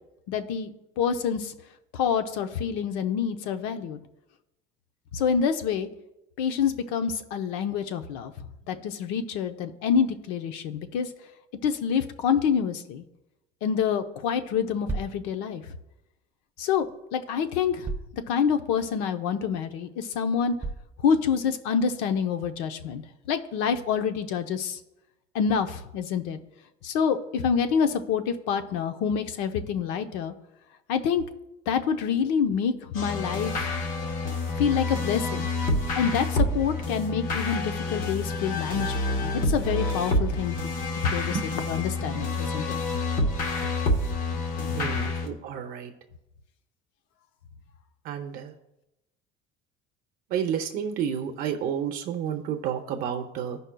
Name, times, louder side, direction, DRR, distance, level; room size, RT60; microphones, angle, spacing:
voice 1, 0.3-1.5 1.9-4.0 5.1-5.9 6.4-8.3 8.7-11.1 11.6-13.0 13.6-15.6 16.6-16.9 17.1-17.9 18.1-20.5 21.0-24.8 25.3-26.4 26.8-30.3 30.9-31.2 31.7-33.7 34.6-40.6 41.0-41.4 41.7-42.8 44.7-44.8, left 7 dB, 85° left, 8 dB, 0.7 m, -27 dB
sound 1, 14.9-15.2 16.8-16.9 17.8-18.2 18.8-18.9 19.5-19.6 20.6-20.9, right 3 dB, 15° right, 0.4 m, -33 dB
sound 2, 32.9-45.3, left 2 dB, 45° left, 1.1 m, -28 dB
voice 2, 44.7-45.9 48.0-48.5 50.3-53.6, right 8 dB, 50° right, 5 dB, 0.7 m, -30 dB
15.5 x 5.3 x 2.2 m, 0.90 s
cardioid pair, 175°, 19 cm